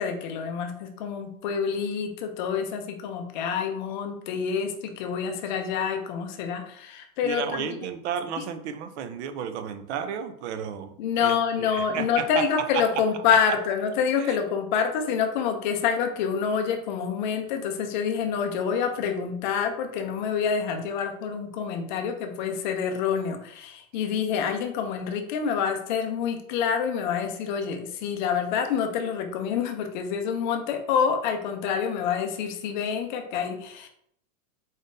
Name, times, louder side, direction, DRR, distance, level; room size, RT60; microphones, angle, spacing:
voice 1, 0.0-7.7 8.4-8.5 11.0-33.9, left 7 dB, 35° left, 5 dB, 0.4 m, -27 dB
voice 2, 7.2-12.9 14.2-14.4, right 8 dB, 55° right, 10 dB, 0.5 m, -33 dB
3.9 x 3.6 x 2.6 m, 0.69 s
supercardioid pair, 165°, 42 cm